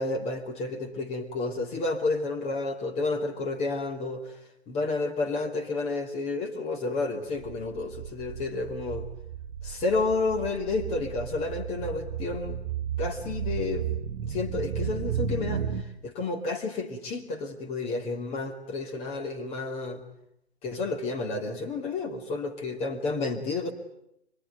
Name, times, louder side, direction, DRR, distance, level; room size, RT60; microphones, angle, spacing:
voice 1, 0.0-4.4 4.7-9.1 9.6-12.6 13.0-20.0 20.6-23.7, left 3 dB, 20° left, 5 dB, 2.8 m, -31 dB
sound 1, 7.4-15.8, right 8 dB, 35° right, 2.9 m, -34 dB
25.0 x 24.0 x 9.4 m, 0.79 s
figure-of-eight pair, 130°, 33 cm